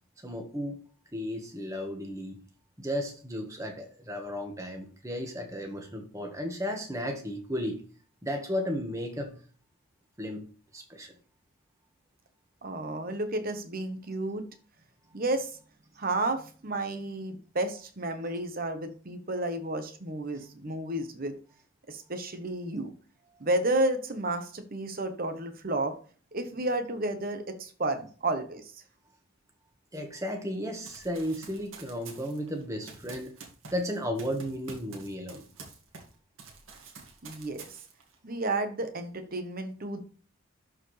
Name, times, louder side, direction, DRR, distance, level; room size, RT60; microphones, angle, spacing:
voice 1, 0.2-0.8 1.1-2.4 2.8-7.8 8.2-9.3 10.2-10.4 10.7-11.1 29.9-33.3 33.7-35.4, equal, 15° right, 3 dB, 1.5 m, -34 dB
voice 2, 12.6-14.4 15.1-15.5 16.0-21.4 21.9-22.9 23.4-25.9 26.3-28.6 37.2-37.6 38.2-40.0, right 2 dB, 45° right, 7 dB, 1.1 m, -31 dB
Run, 30.9-36.1 36.4-38.1, right 4 dB, 70° right, 2.0 m, -48 dB
12.0 x 4.6 x 3.3 m, 0.40 s
head